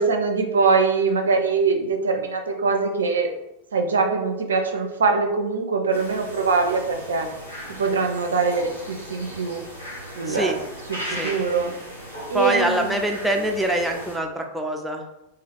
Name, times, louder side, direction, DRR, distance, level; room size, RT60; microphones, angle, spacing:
voice 1, 0.0-3.3 3.7-7.3 7.8-9.6 10.1-10.6 10.9-11.7 12.3-13.0 13.3-13.4, right 4 dB, 70° right, 4 dB, 0.4 m, -23 dB
sound 1, 5.9-14.2, equal, 90° left, 1.0 m, -37 dB
voice 2, 10.3-10.6 11.2-11.4 12.3-15.0, right 1 dB, 5° right, 2 dB, 0.4 m, -24 dB
3.1 x 2.3 x 3.1 m, 0.91 s
figure-of-eight pair, 90°, 0 cm